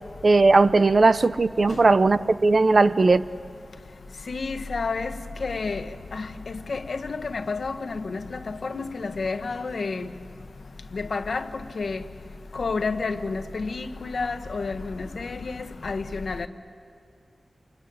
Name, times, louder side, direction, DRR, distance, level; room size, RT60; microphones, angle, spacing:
voice 1, 0.2-3.2, right 3 dB, 55° right, 14 dB, 0.6 m, -18 dB
voice 2, 4.3-5.1 5.4-5.8 6.1-6.2 6.7-8.2 8.5-10.0 10.9-11.4 11.8-12.0 12.6-16.5, left 4 dB, 75° left, 9 dB, 1.1 m, -30 dB
26.5 x 23.0 x 9.4 m, 2.3 s
wide cardioid pair, 90°, 0 cm